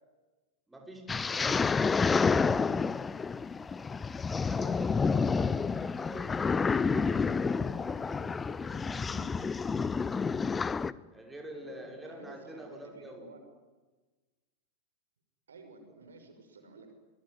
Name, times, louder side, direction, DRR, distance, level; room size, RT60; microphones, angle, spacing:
voice 1, 0.7-1.4 1.8-2.7 4.4-9.4 11.1-13.3 15.9-16.0, equal, 5° right, 2 dB, 5.8 m, -47 dB
sound 1, 1.1-10.9, left 5 dB, 15° left, 0.8 m, -29 dB
voice 2, 11.5-13.4 15.5-16.9, right 3 dB, 70° right, 6 dB, 6.0 m, -52 dB
26.0 x 23.0 x 9.9 m, 1.2 s
figure-of-eight pair, 90°, 0 cm